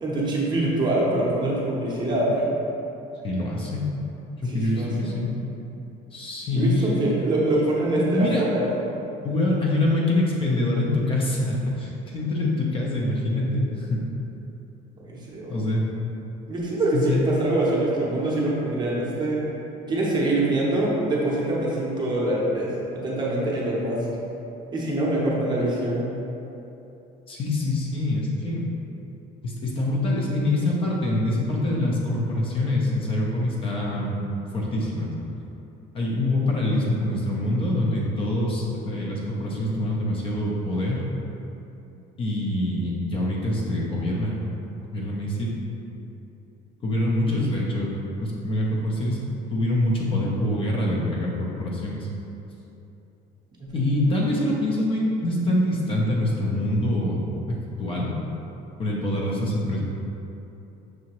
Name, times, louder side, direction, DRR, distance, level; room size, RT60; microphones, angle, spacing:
voice 1, 0.0-2.5 4.4-5.1 6.5-8.8 15.0-15.6 16.5-19.5 19.9-24.1 24.7-26.1 47.2-47.6 53.6-54.4, right 1 dB, 25° right, -5 dB, 0.7 m, -25 dB
voice 2, 3.2-3.8 4.4-5.4 6.1-7.0 8.0-8.4 9.2-14.0 15.5-15.9 16.9-17.2 27.3-28.7 29.4-34.2 34.5-35.1 35.9-41.1 42.2-44.4 44.9-45.5 46.8-47.9 48.2-52.1 53.7-57.2 57.8-58.1 58.8-59.8, left 1 dB, 30° left, -3 dB, 0.5 m, -25 dB
6.1 x 2.8 x 2.9 m, 3.0 s
cardioid pair, 160°, 18 cm